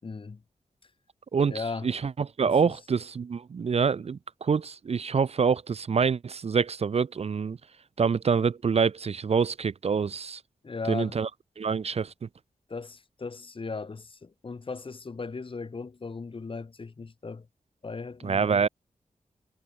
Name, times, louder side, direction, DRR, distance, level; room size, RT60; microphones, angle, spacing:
voice 1, 0.0-0.4 1.5-1.9 2.4-2.7 10.6-11.2 12.7-17.5 17.8-18.5, left 4 dB, 40° left, 0.7 m, -37 dB
voice 2, 1.3-7.6 8.0-10.4 10.9-11.3 11.6-12.1 18.2-18.7, right 6 dB, 45° right, 0.4 m, -26 dB
cardioid pair, 70°, 14 cm